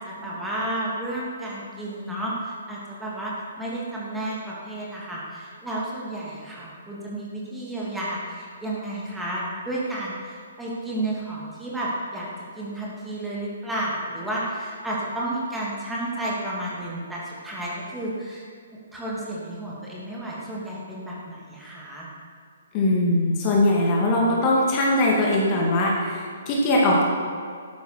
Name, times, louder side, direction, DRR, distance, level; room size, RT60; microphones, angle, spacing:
voice 1, 0.0-12.3 12.5-18.4 18.9-22.1, right 1 dB, 5° right, -7 dB, 2.8 m, -32 dB
voice 2, 22.7-27.0, left 1 dB, 30° left, -3 dB, 2.5 m, -21 dB
13.0 x 10.5 x 4.7 m, 2.3 s
figure-of-eight pair, 125°, 0 cm